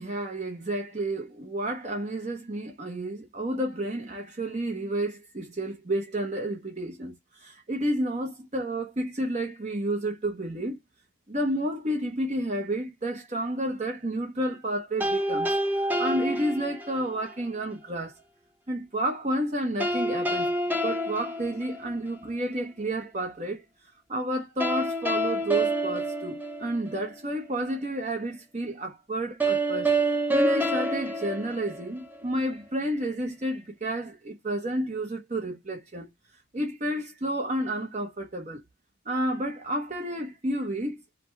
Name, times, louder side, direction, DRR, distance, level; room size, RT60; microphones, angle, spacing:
voice 1, 0.0-10.8 11.3-18.2 18.7-20.5 20.8-23.6 24.1-29.9 30.3-36.1 36.5-38.6 39.0-41.0, right 1 dB, 35° right, 1.0 m, -31 dB
sound 1, 15.0-17.2 19.8-22.2 24.6-27.1 29.4-32.2, right 1 dB, 10° right, 0.9 m, -28 dB
5.0 x 2.3 x 4.4 m
head